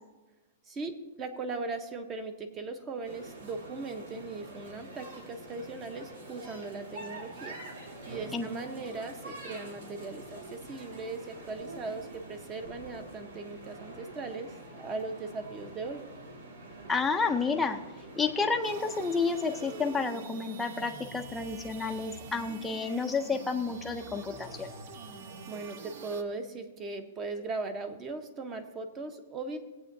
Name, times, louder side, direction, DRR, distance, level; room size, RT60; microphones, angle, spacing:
voice 1, 0.6-7.6 8.1-16.0 25.5-29.6, right 3 dB, 20° right, 8 dB, 0.9 m, -39 dB
sound 1, 3.0-20.0, right 1 dB, 85° right, 2.9 m, -46 dB
voice 2, 16.9-17.8 18.2-24.7, left 4 dB, 5° left, 2 dB, 0.5 m, -30 dB
sound 2, 18.6-26.2, right 4 dB, 50° right, 0.9 m, -45 dB
19.0 x 8.4 x 2.7 m, 1.1 s
hypercardioid pair, 160°, 0 cm